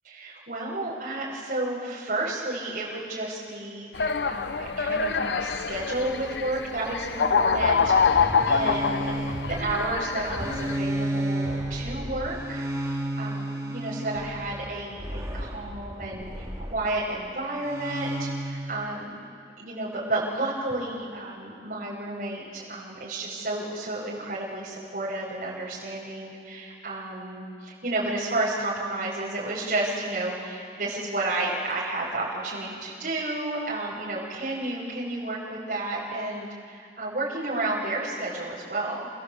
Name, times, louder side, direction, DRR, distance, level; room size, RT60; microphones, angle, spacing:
voice 1, 0.0-9.3 9.6-19.2 19.6-39.1, right 2 dB, 50° right, -10 dB, 6.7 m, -31 dB
sound 1, 3.9-10.8, left 5 dB, 85° left, 0.7 m, -25 dB
sound 2, 7.4-16.9 17.6-18.7, right 1 dB, 20° right, 4.9 m, -32 dB
28.0 x 16.5 x 8.6 m, 2.3 s
head